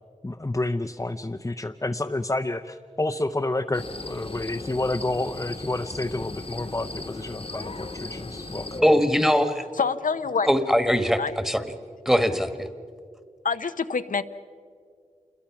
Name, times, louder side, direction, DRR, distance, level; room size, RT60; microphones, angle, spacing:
voice 1, 0.2-9.0, left 2 dB, 25° left, 6 dB, 0.6 m, -29 dB
sound 1, 3.7-8.8, left 2 dB, 45° left, 1.2 m, -37 dB
voice 2, 8.8-9.6 10.4-11.7 12.0-12.7, equal, 5° right, 10 dB, 1.4 m, -21 dB
voice 3, 9.8-10.5 11.2-11.3 13.4-14.2, left 5 dB, 85° left, 9 dB, 0.7 m, -25 dB
28.0 x 22.0 x 5.9 m, 2.2 s
wide cardioid pair, 65°, 13 cm